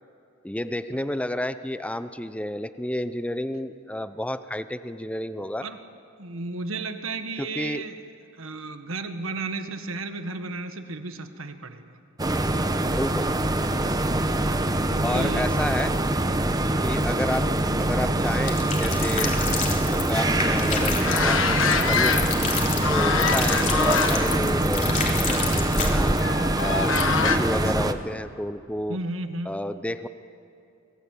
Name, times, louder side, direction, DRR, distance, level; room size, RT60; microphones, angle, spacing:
voice 1, 0.4-5.7 7.4-7.8 12.9-13.3 15.0-15.9 16.8-17.5 17.8-19.3 19.9-22.3 22.9-25.0 25.2-26.2 26.6-26.9 27.2-29.0 29.5-30.1, left 1 dB, 5° left, 11 dB, 0.6 m, -31 dB
voice 2, 6.2-8.0 8.4-12.0 14.9-15.5 17.0-17.2 28.9-29.6, right 3 dB, 85° right, 8 dB, 1.6 m, -34 dB
sound 1, 12.2-27.9, right 1 dB, 20° right, 0.9 m, -24 dB
sound 2, 18.5-26.2 26.6-26.7 27.0-27.1, left 4 dB, 40° left, 3.6 m, -30 dB
sound 3, 20.1-22.5 22.8-24.3 24.7-24.9 26.2-27.4, left 6 dB, 70° left, 1.5 m, -25 dB
25.5 x 19.5 x 8.5 m, 2.7 s
head